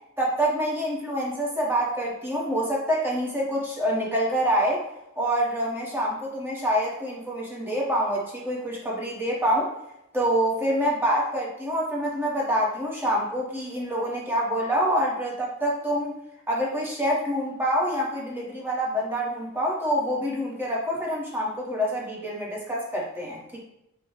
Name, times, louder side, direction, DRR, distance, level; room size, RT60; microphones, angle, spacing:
voice 1, 0.2-4.8 5.2-9.7 10.1-16.1 16.5-23.6, equal, 10° right, -4 dB, 1.1 m, -26 dB
4.9 x 2.1 x 4.8 m, 0.84 s
head